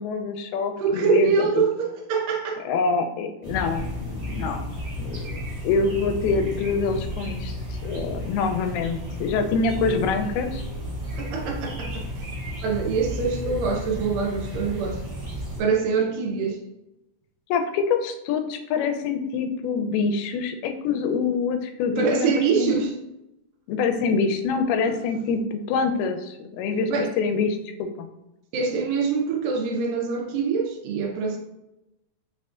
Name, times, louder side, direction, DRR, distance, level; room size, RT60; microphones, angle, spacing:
voice 1, 0.0-1.6 2.7-4.6 5.0-7.5 7.8-10.6 17.5-22.7 23.7-26.9 27.2-28.1, left 5 dB, 85° left, 7 dB, 2.4 m, -25 dB
voice 2, 0.8-2.6 11.2-12.3 12.6-15.0 15.6-16.6 22.0-22.9 24.9-25.0 26.9-27.1 28.5-31.4, right 5 dB, 80° right, 1 dB, 2.0 m, -24 dB
sound 1, 3.4-15.6, equal, 55° right, 1.0 m, -33 dB
5.9 x 2.3 x 2.4 m, 0.90 s
omnidirectional pair, 4.3 m